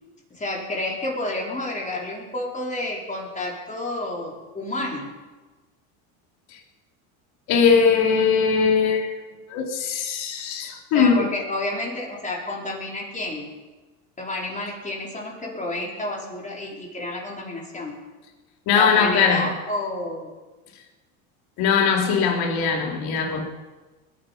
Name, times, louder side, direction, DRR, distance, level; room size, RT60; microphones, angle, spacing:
voice 1, 0.3-5.1 10.9-13.5 14.2-18.0 18.7-20.3, left 1 dB, 15° left, 4.6 m, -30 dB
voice 2, 7.5-9.1 9.5-11.3 18.7-19.5 21.6-23.4, left 6 dB, 60° left, 3.4 m, -20 dB
20.5 x 9.8 x 5.5 m
supercardioid pair, 100°, 43 cm